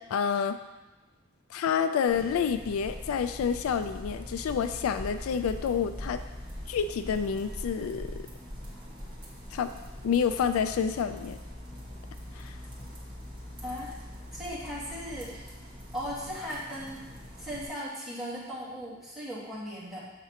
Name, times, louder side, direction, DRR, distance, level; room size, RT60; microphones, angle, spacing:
voice 1, 0.1-0.6 1.5-6.2 6.7-8.2 9.5-9.7 10.0-11.4 12.4-12.6, left 7 dB, 80° left, 10 dB, 0.3 m, -28 dB
sound 1, 2.1-17.7, equal, 20° right, 1.5 m, -42 dB
voice 2, 13.6-14.0 14.3-15.4 15.9-17.0 17.4-20.0, equal, ahead, -11 dB, 2.2 m, -37 dB
7.4 x 5.8 x 2.8 m, 1.1 s
head